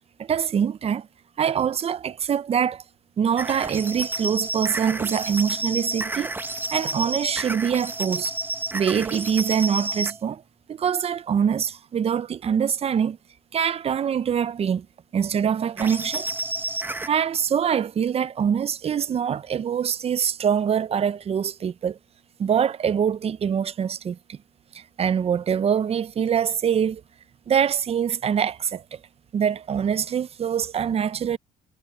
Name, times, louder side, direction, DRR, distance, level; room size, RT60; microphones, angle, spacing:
voice 1, 0.2-1.1 1.4-2.8 3.2-6.3 6.7-8.3 8.7-10.4 10.7-13.2 13.5-14.9 15.1-16.3 17.1-22.0 22.4-24.4 24.7-27.0 27.5-29.0 29.3-31.4, right 8 dB, 35° right, 0.6 m, -24 dB
sound 1, 3.4-10.2 15.8-17.1, right 2 dB, 10° right, 0.9 m, -30 dB
cardioid pair, 110°, 17 cm